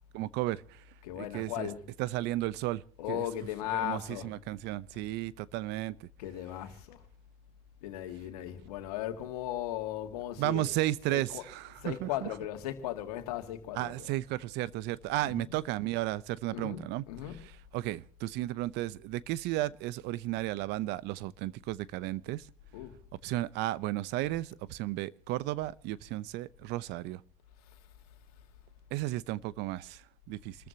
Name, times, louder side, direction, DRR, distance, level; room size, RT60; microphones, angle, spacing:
voice 1, 0.1-0.8 1.2-1.7 2.0-2.8 3.1-3.2 3.7-6.1 10.4-12.3 13.7-22.5 23.2-27.2 28.9-30.6, right 16 dB, 65° right, 0.8 m, -34 dB
voice 2, 1.0-1.8 3.0-4.3 6.2-7.0 7.8-10.7 11.1-11.5 11.8-14.2 15.2-15.5 16.5-17.5 22.7-22.9, left 12 dB, 85° left, 2.2 m, -37 dB
28.0 x 14.0 x 2.9 m
supercardioid pair, 85°, 19 cm